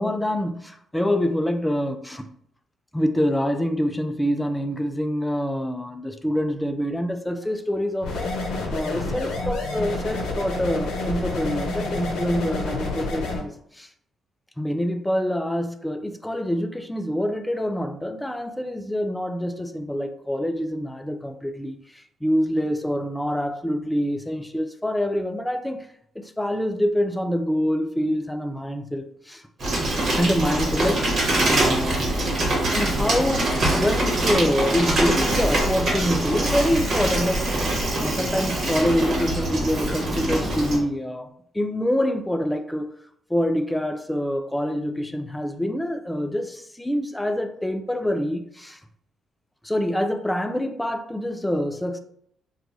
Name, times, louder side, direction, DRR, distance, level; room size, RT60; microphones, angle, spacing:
voice 1, 0.0-2.3 2.9-8.4 8.7-13.9 14.6-21.8 22.2-25.8 26.2-29.4 30.2-31.1 31.4-32.5 32.7-42.9 43.3-48.8 49.6-52.0, equal, 5° left, 0.3 m, -26 dB
sound 1, 8.0-13.4, left 2 dB, 85° left, 0.6 m, -28 dB
Bicycle, 29.6-40.8, right 1 dB, 55° right, 1.1 m, -23 dB
3.0 x 2.3 x 2.6 m
cardioid pair, 90°, 0 cm